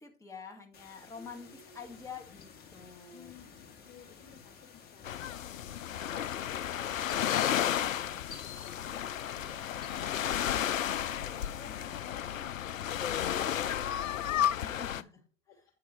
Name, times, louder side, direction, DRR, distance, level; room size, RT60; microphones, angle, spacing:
voice 1, 0.0-3.3 11.7-12.0 14.6-15.1, left 5 dB, 10° left, 2 dB, 1.9 m, -47 dB
sound 1, 0.7-11.9, left 7 dB, 25° left, 2.1 m, -52 dB
voice 2, 1.1-1.9 3.1-3.5 3.9-5.3 8.6-12.3 12.6-14.9 15.5-15.6, left 6 dB, 40° left, 3 dB, 2.6 m, -57 dB
sound 2, 5.0-15.0, left 10 dB, 80° left, 0.5 m, -32 dB
Wind instrument woodwind instrument, 9.3-13.9, right 4 dB, 45° right, 4.0 m, -60 dB
9.5 x 6.1 x 4.5 m, 0.37 s
figure-of-eight pair, 95°, 39 cm